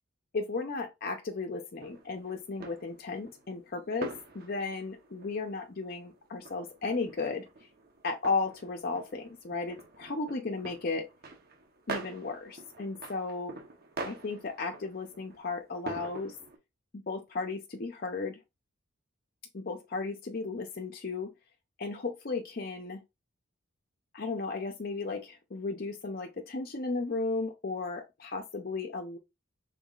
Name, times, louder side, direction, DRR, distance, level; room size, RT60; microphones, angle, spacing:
voice 1, 0.3-7.7 8.0-11.1 11.9-13.5 14.0-16.4 16.9-18.4 19.5-21.3 21.8-23.0 24.1-29.2, left 3 dB, 45° left, 0.5 m, -35 dB
sound 1, 1.8-16.6, right 3 dB, 45° right, 0.9 m, -45 dB
5.4 x 3.9 x 2.4 m
head